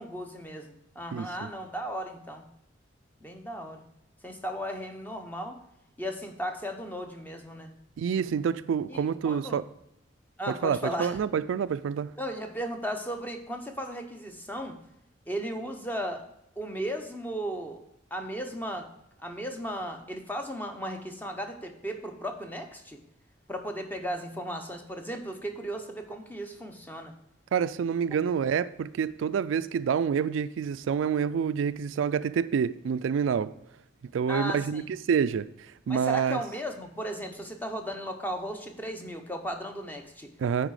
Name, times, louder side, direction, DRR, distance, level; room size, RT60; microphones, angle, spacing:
voice 1, 0.0-2.4 3.2-3.8 4.2-5.6 6.0-7.7 8.9-9.6 10.4-11.2 12.2-14.8 15.3-16.2 16.6-17.8 18.1-18.9 19.2-23.0 23.5-27.1 34.3-34.9 35.9-40.3, equal, 10° left, 0.7 m, -36 dB
voice 2, 8.0-9.6 10.5-12.1 27.5-33.5 34.1-35.5 35.9-36.4 40.4-40.7, right 7 dB, 85° right, 0.3 m, -27 dB
8.9 x 4.7 x 4.8 m
head